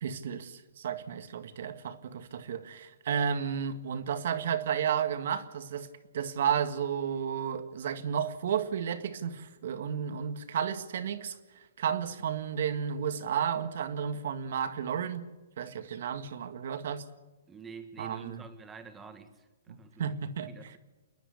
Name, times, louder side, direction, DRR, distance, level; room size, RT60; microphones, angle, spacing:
voice 1, 0.0-5.9 6.1-11.4 11.8-15.2 15.6-17.1 18.0-18.4 19.7-20.7, right 8 dB, 60° right, 1.8 m, -32 dB
voice 2, 17.5-20.1 20.5-20.8, right 5 dB, 10° right, 1.8 m, -48 dB
28.5 x 11.0 x 8.5 m
hypercardioid pair, 145°, 0 cm